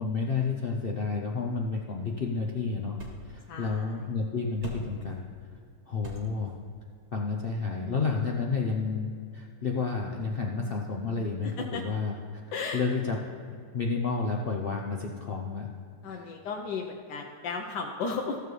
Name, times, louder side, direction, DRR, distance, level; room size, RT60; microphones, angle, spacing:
voice 1, 0.0-3.0 3.2-5.2 5.9-6.5 7.1-12.1 12.7-13.2 13.7-15.7 16.1-16.3, left 4 dB, 60° left, 0 dB, 0.6 m, -30 dB
sound 1, 1.3-8.4, right 1 dB, 80° right, 2.4 m, -48 dB
voice 2, 3.5-4.0 11.4-11.8 12.5-12.8 16.0-18.4, left 4 dB, 80° left, 1 dB, 1.4 m, -35 dB
15.0 x 6.9 x 3.2 m, 2.3 s
omnidirectional pair, 1.8 m